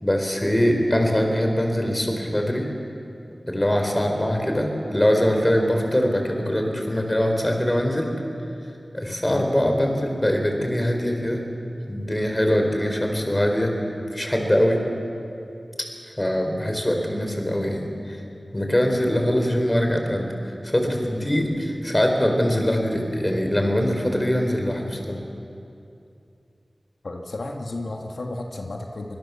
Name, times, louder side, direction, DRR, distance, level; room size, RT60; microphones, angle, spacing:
voice 1, 0.0-2.7 3.5-8.1 8.9-11.4 11.9-13.7 14.1-14.8 16.2-18.2 18.5-20.3 20.6-25.2, equal, 20° left, 3 dB, 4.5 m, -22 dB
voice 2, 27.0-29.2, left 2 dB, 85° left, 1 dB, 1.7 m, -32 dB
24.5 x 21.0 x 7.2 m, 2.6 s
wide cardioid pair, 55°, 0 cm